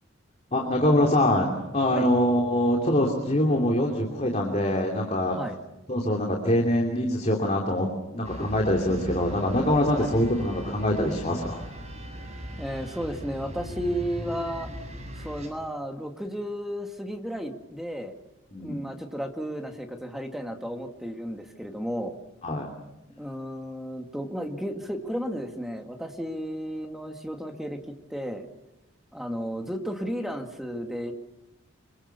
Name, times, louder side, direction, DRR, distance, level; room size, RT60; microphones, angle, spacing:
voice 1, 0.5-5.4 5.9-7.9 8.1-11.6 18.5-18.8 22.4-22.7, left 1 dB, 35° left, 1 dB, 3.0 m, -24 dB
sound 1, 8.2-15.5, equal, 30° right, 7.2 m, -39 dB
voice 2, 12.6-14.7 15.2-18.1 18.6-22.2 23.2-27.8 28.1-28.5 29.1-31.1, equal, ahead, 4 dB, 2.1 m, -33 dB
26.0 x 23.5 x 6.9 m, 0.94 s
head